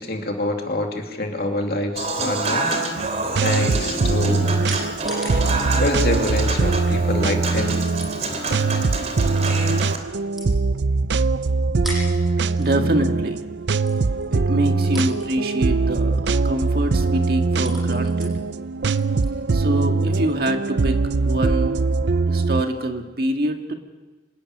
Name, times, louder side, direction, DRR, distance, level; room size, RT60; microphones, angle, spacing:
voice 1, 0.0-2.7 3.3-4.7 5.8-7.7, left 2 dB, 60° left, 3 dB, 2.7 m, -26 dB
Human voice / Acoustic guitar / Piano, 2.0-10.0, right 3 dB, 40° right, 2.9 m, -27 dB
sound 1, 3.0-22.6, right 3 dB, 80° right, 0.6 m, -22 dB
sound 2, 3.8-20.2, equal, ahead, 7.8 m, -43 dB
voice 2, 12.6-13.4 14.3-18.4 19.5-21.8 22.3-23.7, right 1 dB, 55° right, 4 dB, 2.0 m, -25 dB
26.0 x 12.5 x 9.6 m, 1.2 s
head